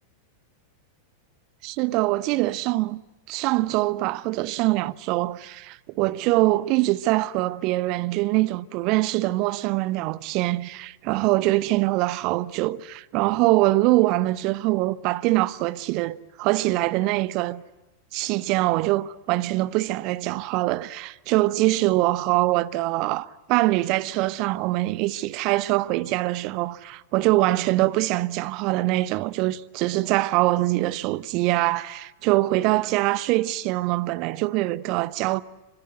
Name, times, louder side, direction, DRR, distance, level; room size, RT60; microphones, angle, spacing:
voice 1, 1.6-3.0 3.3-17.6 18.1-35.4, right 18 dB, 40° right, 0.9 m, -23 dB
28.5 x 25.5 x 8.1 m
figure-of-eight pair, 90°, 0 cm